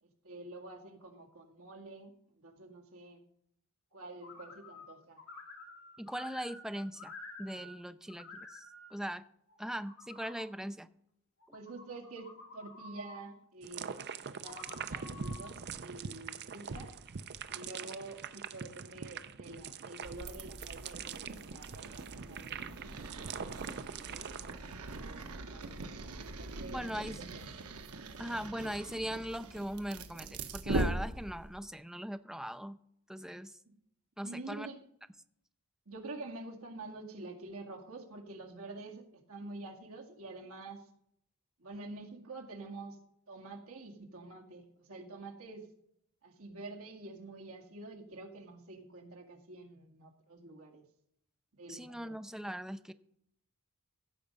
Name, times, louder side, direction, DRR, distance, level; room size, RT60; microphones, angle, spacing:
voice 1, 0.0-3.2 3.9-5.2 11.5-14.0 14.2-16.9 17.5-24.4 25.0-25.8 26.2-27.4 34.2-34.8 35.9-40.9 41.6-43.0 43.3-45.7 46.2-50.8 51.5-52.2, right 2 dB, 70° right, 1 dB, 2.1 m, -48 dB
sound 1, 4.2-4.9 5.2-7.8 8.1-8.9 9.5-10.5 11.4-13.2 14.3-15.5, left 3 dB, 65° left, 2.6 m, -51 dB
voice 2, 6.0-9.2 9.6-10.9 11.5-11.6 26.7-27.2 28.2-32.8 33.1-33.6 34.2-34.7 51.7-52.9, equal, ahead, 11 dB, 0.5 m, -40 dB
sound 2, 13.6-24.5, right 6 dB, 50° right, 0.6 m, -43 dB
sound 3, 20.0-31.6, right 2 dB, 85° right, 1.1 m, -41 dB
15.5 x 7.0 x 5.3 m, 0.72 s
head